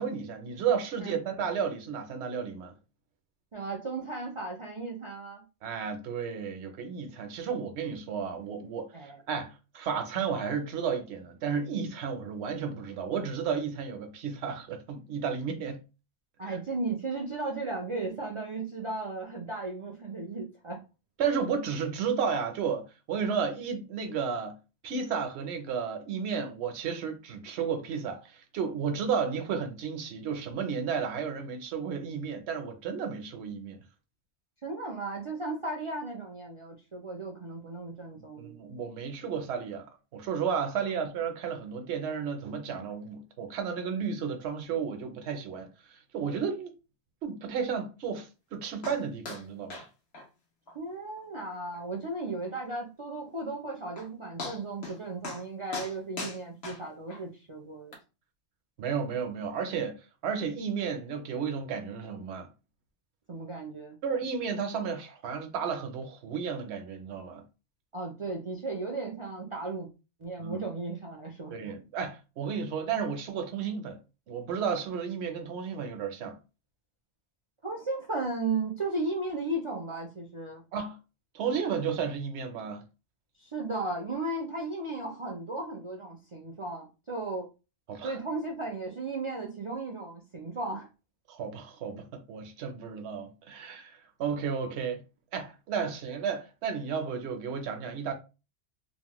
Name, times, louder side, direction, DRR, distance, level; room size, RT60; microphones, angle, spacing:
voice 1, 0.0-2.7 5.6-15.8 16.4-16.6 21.2-24.6 24.8-33.8 38.2-39.9 40.1-46.7 47.2-49.8 58.8-59.9 60.2-62.5 64.0-67.4 70.4-70.6 71.5-74.0 74.3-76.4 80.7-81.0 81.3-82.8 87.9-88.2 91.3-95.0 95.3-98.1, right 6 dB, 80° right, 0.9 m, -33 dB
voice 2, 3.5-5.4 8.9-9.2 16.4-20.8 34.6-38.5 50.7-58.0 63.3-64.0 67.9-69.9 70.2-71.5 77.6-80.6 83.4-87.5 88.0-90.9, right 2 dB, 40° right, 0.4 m, -35 dB
sound 1, 48.8-49.0 49.3-49.4 49.7-49.9 50.1-50.3 50.7-50.8 51.2-51.3 51.7-51.8 53.5-53.6 54.0-54.1 54.4-55.0 55.2-55.4 55.7-57.2 57.9-58.0, left 3 dB, 75° left, 1.2 m, -39 dB
2.9 x 2.1 x 2.9 m
omnidirectional pair, 1.1 m